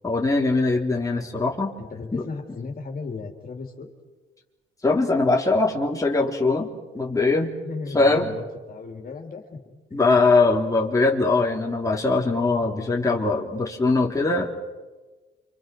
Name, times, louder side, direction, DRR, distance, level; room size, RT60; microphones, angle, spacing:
voice 1, 0.0-1.8 2.1-2.2 4.8-6.7 6.9-7.5 7.9-8.4 9.9-14.5, left 3 dB, 15° left, -1 dB, 3.5 m, -21 dB
voice 2, 1.8-3.9 7.6-10.0, left 4 dB, 45° left, 2 dB, 3.9 m, -36 dB
28.5 x 26.5 x 6.2 m, 1.2 s
cardioid pair, 90°, 20 cm